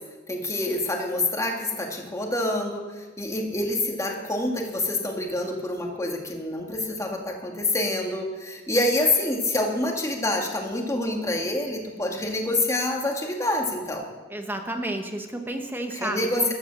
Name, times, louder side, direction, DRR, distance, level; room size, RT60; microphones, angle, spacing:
voice 1, 0.3-14.1 15.9-16.5, left 2 dB, 15° left, 1 dB, 2.0 m, -27 dB
voice 2, 14.3-16.5, right 1 dB, 10° right, 5 dB, 1.2 m, -31 dB
15.0 x 12.5 x 6.4 m, 1.4 s
head